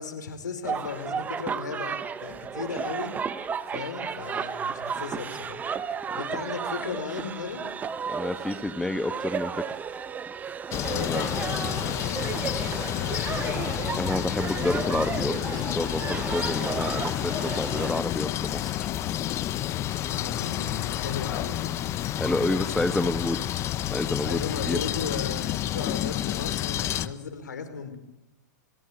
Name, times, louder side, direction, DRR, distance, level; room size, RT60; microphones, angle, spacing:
voice 1, 0.0-3.1 3.7-5.7 6.2-7.6 10.9-13.6 20.1-21.7 24.2-28.0, left 6 dB, 80° left, 9 dB, 5.5 m, -36 dB
sound 1, 0.6-18.0, right 6 dB, 15° right, 1.0 m, -33 dB
voice 2, 8.1-9.8 10.9-11.3 14.0-18.9 22.2-23.4 23.9-24.8 27.0-27.1, left 2 dB, 5° left, 10 dB, 1.3 m, -29 dB
sound 2, 10.7-27.1, left 12 dB, 30° left, 1.1 m, -30 dB
sound 3, 14.2-24.8, left 7 dB, 65° left, 7.2 m, -51 dB
29.5 x 17.5 x 9.0 m, 0.93 s
hypercardioid pair, 120°, 10 cm